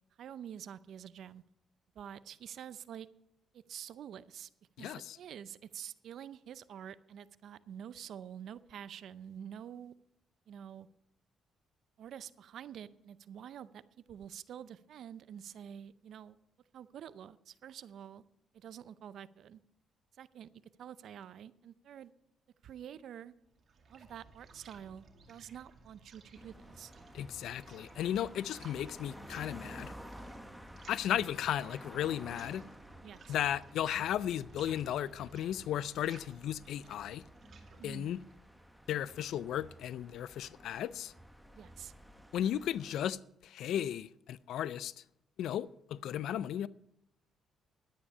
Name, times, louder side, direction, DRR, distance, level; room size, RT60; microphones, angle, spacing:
voice 1, 0.2-1.4 1.9-3.1 3.5-4.5 4.8-9.9 10.5-10.9 12.0-13.8 14.1-16.4 16.7-18.2 18.5-19.6 20.2-22.1 22.6-23.3 23.9-26.9 33.0-33.4 37.8-38.1 41.6-41.9, right 9 dB, 70° right, 0.5 m, -48 dB
voice 2, 4.8-5.2 27.1-29.9 30.9-32.6 33.3-37.2 37.8-38.2 38.9-41.1 42.3-43.2 43.4-44.9 45.4-46.7, left 11 dB, 80° left, 0.4 m, -35 dB
sound 1, 23.3-39.3, right 4 dB, 50° right, 2.2 m, -59 dB
sound 2, 26.3-43.1, equal, ahead, 1.1 m, -53 dB
11.0 x 9.9 x 5.5 m
cardioid pair, 90°, 0 cm